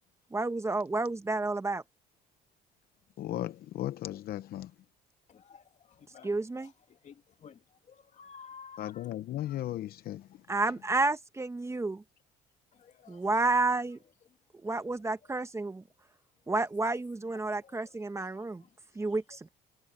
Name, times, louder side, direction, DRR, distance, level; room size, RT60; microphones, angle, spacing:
voice 1, 0.3-1.8 6.2-6.7 10.5-12.0 13.1-14.0 14.6-15.8 16.5-18.6 18.9-19.5, right 3 dB, 15° right, 1.3 m, -30 dB
voice 2, 3.2-4.8 8.8-10.4, left 13 dB, 65° left, 0.8 m, -36 dB
voice 3, 5.3-6.3 6.6-9.1 12.7-13.3 17.5-19.1, left 6 dB, 45° left, 2.6 m, -54 dB
cardioid pair, 110°, 17 cm